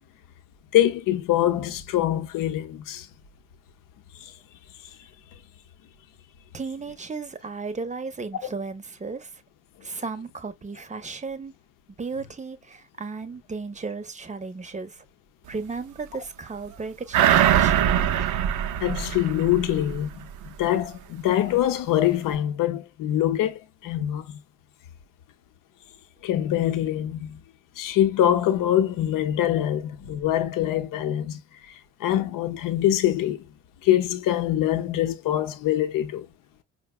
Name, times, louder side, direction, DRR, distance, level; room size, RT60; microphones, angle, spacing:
voice 1, 0.7-3.1 4.2-4.3 18.8-20.3 20.6-24.4 26.2-27.4 27.8-31.4 32.0-33.4 33.8-36.3, left 12 dB, 65° left, 0.7 m, -24 dB
voice 2, 6.5-9.4 9.8-11.5 12.0-15.0 15.5-17.8, right 4 dB, 20° right, 0.7 m, -35 dB
sound 1, 17.1-20.0 20.4-20.5, right 10 dB, 55° right, 0.5 m, -22 dB
4.8 x 2.2 x 2.2 m
supercardioid pair, 65°, 35 cm